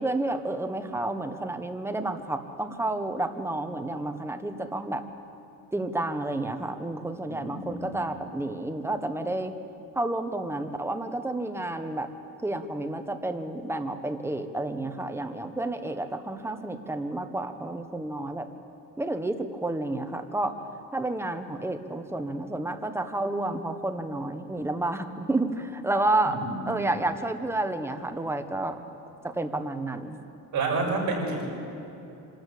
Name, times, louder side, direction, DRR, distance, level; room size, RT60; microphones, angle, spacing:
voice 1, 0.0-5.0 5.7-9.5 9.9-12.1 12.4-18.5 19.0-20.6 20.9-26.4 26.7-28.8 29.2-30.2, right 2 dB, 5° right, 7 dB, 1.2 m, -30 dB
voice 2, 7.3-8.0 26.3-26.9 30.5-31.4, right 3 dB, 55° right, -2 dB, 6.2 m, -30 dB
26.0 x 13.0 x 8.4 m, 2.9 s
cardioid pair, 115°, 35 cm